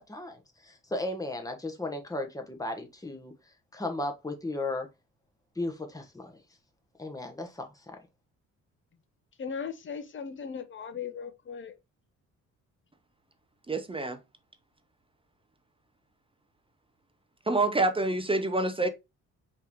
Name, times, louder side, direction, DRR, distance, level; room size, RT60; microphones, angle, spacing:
voice 1, 0.0-3.3 3.7-4.9 5.6-6.4 7.0-8.0, left 2 dB, 10° left, 1.2 m, -35 dB
voice 2, 9.4-11.7, left 6 dB, 40° left, 0.9 m, -38 dB
voice 3, 13.7-14.2 17.5-18.9, right 2 dB, 20° right, 0.6 m, -27 dB
4.6 x 3.1 x 3.5 m
cardioid pair, 90°, 30 cm